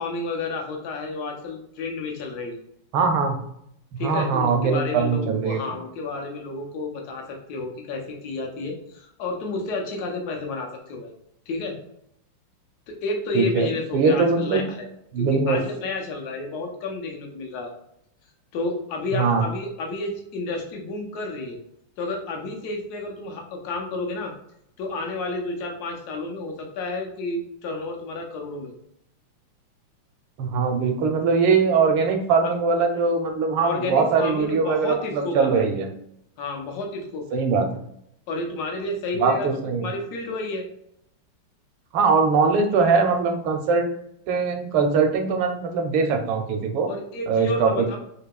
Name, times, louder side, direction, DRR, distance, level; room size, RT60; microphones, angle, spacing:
voice 1, 0.0-2.6 4.0-11.1 11.5-11.7 12.9-14.9 15.2-17.7 18.5-21.6 22.0-24.3 24.8-28.7 32.4-32.6 33.6-35.7 36.4-37.2 38.3-39.5 39.8-40.7 46.9-48.0, left 2 dB, 65° left, 2 dB, 1.0 m, -31 dB
voice 2, 2.9-3.4 3.9-5.6 13.3-14.6 15.1-15.6 19.1-19.5 30.4-35.9 37.3-37.7 39.2-39.9 41.9-43.9 44.3-46.9 47.3-48.0, right 5 dB, 80° right, 5 dB, 1.4 m, -21 dB
4.7 x 2.8 x 2.2 m, 0.74 s
omnidirectional pair, 2.4 m